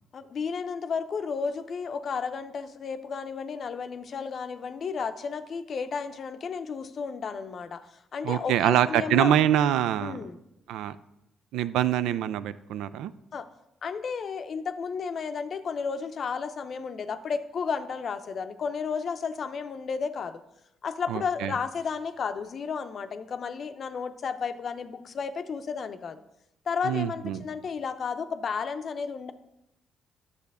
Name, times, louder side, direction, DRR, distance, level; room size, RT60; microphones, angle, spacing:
voice 1, 0.1-9.4 10.0-10.4 13.3-13.5 13.8-20.4 20.8-26.2 26.7-29.3, left 5 dB, 50° left, 10 dB, 0.6 m, -33 dB
voice 2, 8.2-10.2 10.7-11.0 11.5-13.1 21.1-21.5 26.8-27.4, right 11 dB, 90° right, 14 dB, 0.3 m, -25 dB
9.6 x 6.7 x 3.5 m, 0.87 s
cardioid pair, 90°, 0 cm